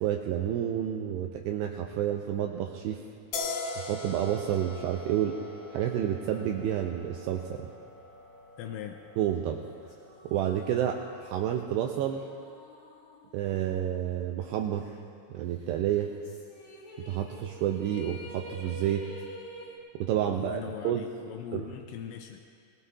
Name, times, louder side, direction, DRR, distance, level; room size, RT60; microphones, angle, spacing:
voice 1, 0.0-3.0 3.8-5.4 5.7-7.7 9.2-9.6 10.2-12.2 13.3-14.9 15.3-16.1 17.1-19.1 19.9-21.0 21.5-21.6, right 10 dB, 85° right, 3 dB, 2.4 m, -30 dB
sound 1, 3.3-10.6, left 3 dB, 65° left, 2.6 m, -41 dB
voice 2, 8.6-9.0 20.3-22.4, left 9 dB, 85° left, 4 dB, 2.9 m, -40 dB
sound 2, 9.6-14.2 14.6-14.7 15.9-19.8, left 1 dB, 35° left, 2.7 m, -48 dB
21.0 x 19.5 x 2.4 m, 2.4 s
omnidirectional pair, 5.4 m